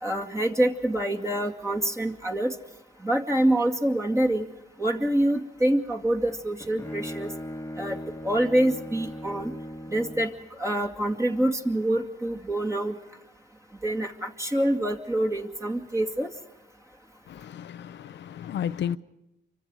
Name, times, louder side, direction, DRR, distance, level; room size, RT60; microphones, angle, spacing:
voice 1, 0.0-2.5 3.0-4.5 4.8-7.3 7.8-8.0 8.2-9.5 9.9-10.3 10.6-12.9 13.8-16.3, right 1 dB, 15° right, 2.4 m, -26 dB
Bowed string instrument, 6.3-10.4, equal, 10° left, 1.7 m, -38 dB
voice 2, 17.3-19.0, left 9 dB, 65° left, 0.7 m, -33 dB
29.0 x 25.0 x 4.8 m
cardioid pair, 90°, 20 cm